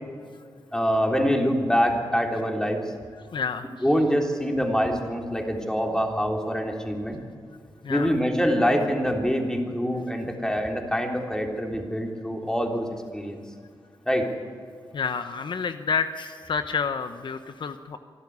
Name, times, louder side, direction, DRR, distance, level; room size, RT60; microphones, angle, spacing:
voice 1, 0.7-2.8 3.8-7.2 7.9-13.4 14.1-14.3, equal, 5° left, 2 dB, 3.5 m, -25 dB
voice 2, 3.3-3.7 7.8-8.2 14.9-18.0, left 5 dB, 65° left, 9 dB, 0.9 m, -29 dB
26.0 x 12.5 x 9.6 m, 2.1 s
cardioid pair, 80°, 9 cm